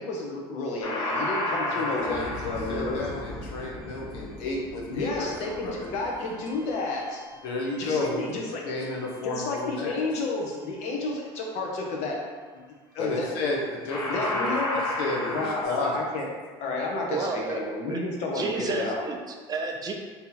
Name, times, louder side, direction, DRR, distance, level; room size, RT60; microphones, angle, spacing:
voice 1, 0.0-3.0 4.9-7.2 7.8-8.7 9.2-12.2 12.9-13.3 14.0-14.8 15.3-16.3 16.6-19.0, left 3 dB, 60° left, -1 dB, 0.8 m, -31 dB
sound 1, 0.8-8.0 13.2-13.5 13.9-15.6, left 1 dB, 35° left, 0.9 m, -33 dB
voice 2, 1.7-5.7 7.4-8.3 8.6-9.9 13.0-14.5 14.8-16.0, left 2 dB, 85° left, -2 dB, 0.9 m, -32 dB
voice 3, 17.1-19.9, right 3 dB, 30° right, 2 dB, 0.5 m, -32 dB
2.8 x 2.8 x 3.8 m, 1.5 s
supercardioid pair, 110°, 13 cm